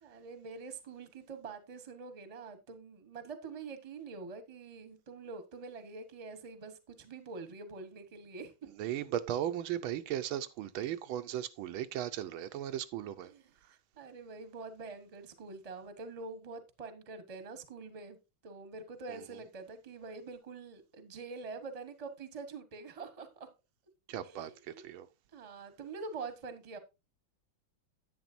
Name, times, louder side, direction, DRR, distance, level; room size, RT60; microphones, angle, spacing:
voice 1, 0.0-8.7 13.2-18.2 18.4-23.5 24.1-24.8 25.3-26.8, right 4 dB, 25° right, 0.9 m, -45 dB
voice 2, 8.8-13.3 19.1-19.2 24.1-25.1, right 11 dB, 90° right, 1.6 m, -37 dB
10.5 x 8.8 x 2.6 m
omnidirectional pair, 2.2 m